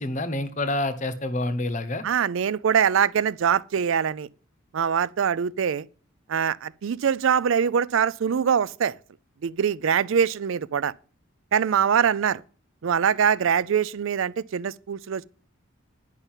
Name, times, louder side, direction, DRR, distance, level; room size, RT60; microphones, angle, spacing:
voice 1, 0.0-2.0, left 2 dB, 35° left, 0.9 m, -27 dB
voice 2, 2.0-4.3 4.7-5.9 6.3-9.0 9.4-10.9 11.5-12.4 12.8-15.2, right 7 dB, 65° right, 0.4 m, -23 dB
10.5 x 5.5 x 7.3 m
head